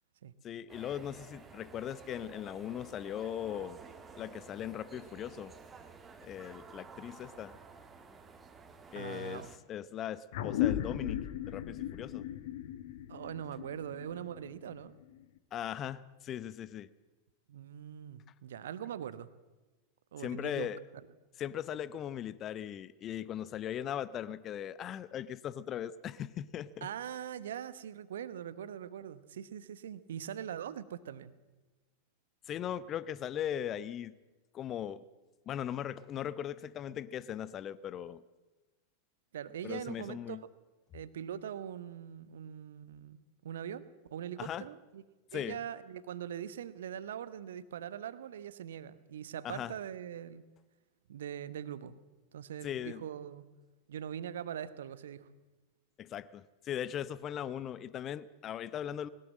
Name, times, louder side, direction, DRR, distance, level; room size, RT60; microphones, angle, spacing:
voice 1, 0.4-3.8 4.2-5.5 6.2-7.6 8.9-9.4 9.7-12.3 15.5-16.9 20.2-20.8 21.4-26.9 32.5-34.2 34.5-35.0 35.5-38.2 39.6-40.4 44.4-44.7 45.3-45.6 49.4-49.7 52.6-53.0 56.0-59.1, left 10 dB, 30° left, 18 dB, 0.7 m, -39 dB
sound 1, 0.7-9.6, right 4 dB, 15° right, 2.0 m, -52 dB
voice 2, 8.9-9.5 13.1-14.9 17.5-19.3 20.1-20.7 26.8-31.3 39.3-40.5 40.9-43.9 44.1-45.0 45.3-50.4 51.1-51.9 52.3-53.5 53.9-55.3, right 9 dB, 60° right, 15 dB, 1.1 m, -42 dB
sound 2, 10.3-15.2, left 12 dB, 55° left, 1.4 m, -36 dB
20.5 x 18.5 x 7.5 m, 1.2 s
figure-of-eight pair, 90°, 0 cm